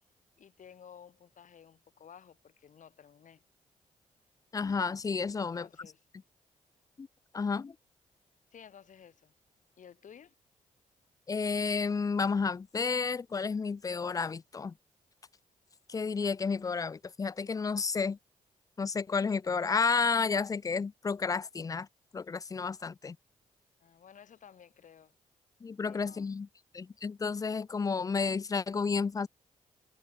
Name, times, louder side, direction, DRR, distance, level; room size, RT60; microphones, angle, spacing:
voice 1, 0.4-3.4 5.4-6.0 8.5-9.3 9.8-10.3 23.8-25.1 25.8-26.3, left 8 dB, 65° left, 3.8 m, -54 dB
voice 2, 4.5-5.7 7.0-7.1 7.3-7.7 11.3-14.7 15.9-18.2 18.8-21.9 22.1-23.2 25.6-26.5 26.7-29.3, left 5 dB, 25° left, 0.3 m, -31 dB
cardioid pair, 60°, 14 cm